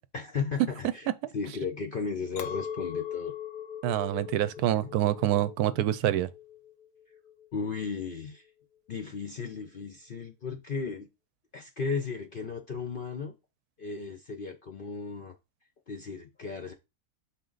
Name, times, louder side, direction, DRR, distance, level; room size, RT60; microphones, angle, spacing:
voice 1, 0.1-1.1 1.3-3.3 4.8-4.9 7.5-8.5 8.9-11.1 11.5-13.3 13.8-15.3 15.9-16.7, left 5 dB, 55° left, 0.6 m, -35 dB
Chink clink, 2.4-7.7, left 9 dB, 85° left, 1.2 m, -40 dB
voice 2, 3.8-6.3, right 13 dB, 80° right, 1.1 m, -26 dB
6.6 x 4.2 x 3.9 m
omnidirectional pair, 1.6 m